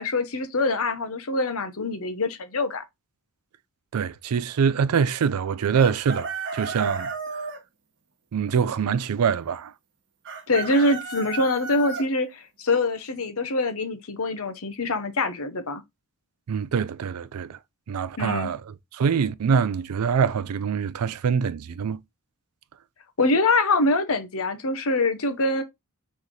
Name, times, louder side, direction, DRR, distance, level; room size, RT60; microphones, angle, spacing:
voice 1, 0.0-2.8 10.5-15.8 18.2-18.5 23.2-25.6, left 2 dB, 70° left, 0.9 m, -24 dB
voice 2, 3.9-7.5 8.3-9.7 16.5-17.6 17.9-22.0, right 6 dB, 85° right, 0.4 m, -24 dB
Chicken rooster, 5.7-7.6 10.3-12.0, right 4 dB, 55° right, 0.9 m, -33 dB
4.1 x 3.2 x 3.6 m
head